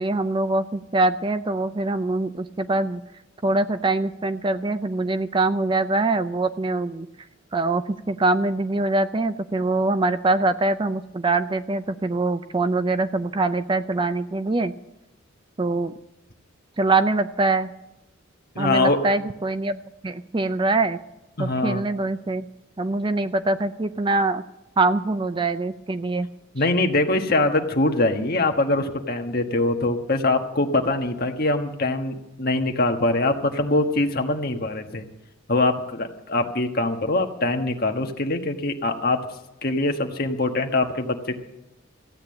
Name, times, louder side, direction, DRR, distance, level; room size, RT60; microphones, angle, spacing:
voice 1, 0.0-3.0 3.4-7.1 7.5-14.7 15.6-15.9 16.8-17.7 18.6-21.0 21.4-22.5 22.8-24.4 24.8-26.3, right 2 dB, 25° right, 12 dB, 0.4 m, -23 dB
voice 2, 18.5-19.0 21.4-21.8 26.5-35.0 35.5-39.2 39.6-41.4, left 2 dB, 45° left, 5 dB, 1.4 m, -23 dB
15.0 x 9.0 x 7.6 m, 0.94 s
head